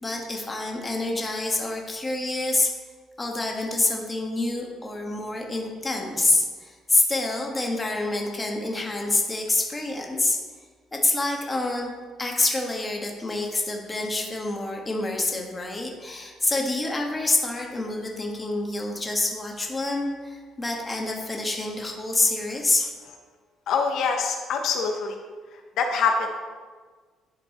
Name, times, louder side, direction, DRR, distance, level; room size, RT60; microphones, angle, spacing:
voice 1, 0.0-2.7 3.2-10.4 10.9-11.9 12.2-22.9, left 2 dB, 15° left, 0 dB, 1.3 m, -27 dB
voice 2, 23.7-25.2 25.5-26.3, left 5 dB, 65° left, 3 dB, 0.8 m, -25 dB
11.0 x 4.5 x 4.1 m, 1.5 s
cardioid pair, 135°, 0 cm